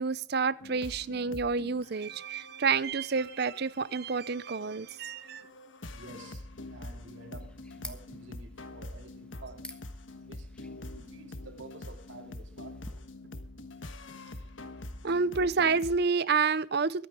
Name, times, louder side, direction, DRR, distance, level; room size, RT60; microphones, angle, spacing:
voice 1, 0.0-5.5 15.0-17.1, right 5 dB, 55° right, 0.6 m, -29 dB
sound 1, 0.6-16.0, left 2 dB, 75° left, 1.4 m, -45 dB
voice 2, 5.9-9.7 10.2-10.5 10.9-13.0, right 2 dB, 75° right, 2.5 m, -50 dB
sound 2, 6.5-13.0, left 1 dB, 5° left, 1.3 m, -52 dB
24.0 x 9.3 x 3.7 m
head